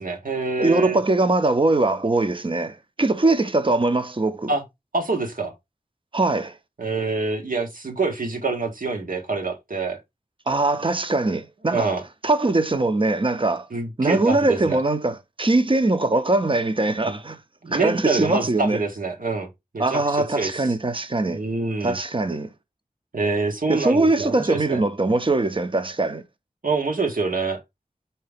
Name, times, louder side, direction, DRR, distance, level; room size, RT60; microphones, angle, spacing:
voice 1, 0.0-1.0 4.5-4.6 4.9-5.5 6.8-10.0 11.7-12.0 13.7-14.8 17.0-17.2 17.6-19.5 19.7-20.7 21.3-22.0 23.1-24.8 26.6-27.6, right 3 dB, 75° right, 1.2 m, -26 dB
voice 2, 0.6-4.5 6.1-6.5 10.5-11.9 12.2-13.7 14.0-17.4 17.7-18.8 19.8-21.4 21.8-22.5 23.7-26.2, right 2 dB, 35° right, 0.7 m, -21 dB
4.7 x 2.9 x 3.4 m
wide cardioid pair, 45°, 15 cm